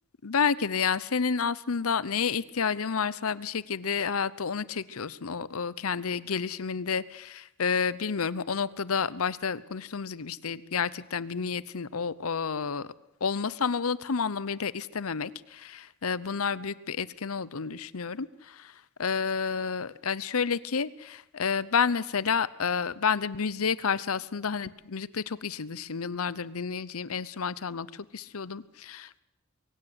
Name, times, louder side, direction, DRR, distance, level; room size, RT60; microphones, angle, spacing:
voice 1, 0.2-12.9 13.2-18.7 19.0-27.9 28.1-29.2, left 6 dB, 85° left, 19 dB, 0.8 m, -30 dB
22.5 x 18.0 x 8.1 m, 0.80 s
head